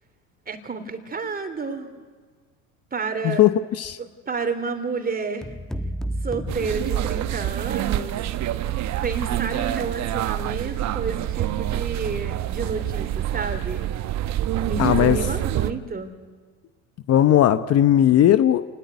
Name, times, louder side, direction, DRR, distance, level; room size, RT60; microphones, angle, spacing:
voice 1, 0.5-1.9 2.9-3.4 4.0-5.5 6.2-8.2 9.0-13.9 14.6-16.2, right 4 dB, 25° right, 8 dB, 3.4 m, -30 dB
voice 2, 3.2-4.0 14.8-15.2 17.1-18.7, left 11 dB, 40° left, 13 dB, 0.9 m, -17 dB
sound 1, 5.4-7.7, equal, ahead, 1.4 m, -32 dB
sound 2, 6.5-15.7, right 13 dB, 45° right, 1.2 m, -26 dB
28.0 x 19.5 x 9.6 m, 1.5 s
hypercardioid pair, 85°, 37 cm